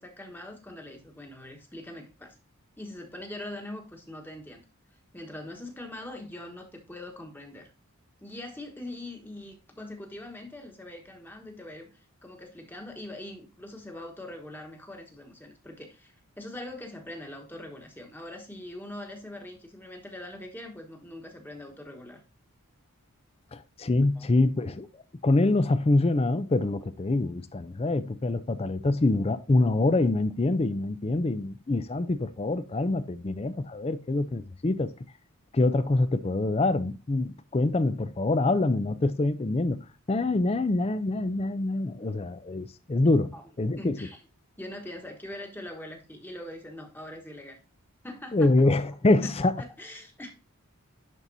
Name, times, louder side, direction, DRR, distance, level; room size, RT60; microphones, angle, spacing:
voice 1, 0.0-2.4 2.8-4.6 5.1-7.7 8.2-22.2 24.1-24.3 29.3-29.4 43.3-43.4 43.8-44.2 44.6-47.6 48.0-48.9 49.2-49.3 49.6-50.3, left 1 dB, 10° left, 1.2 m, -42 dB
voice 2, 23.5-24.9 25.2-34.9 35.5-44.1 48.3-49.6, left 2 dB, 25° left, 0.4 m, -25 dB
11.0 x 4.1 x 2.7 m
head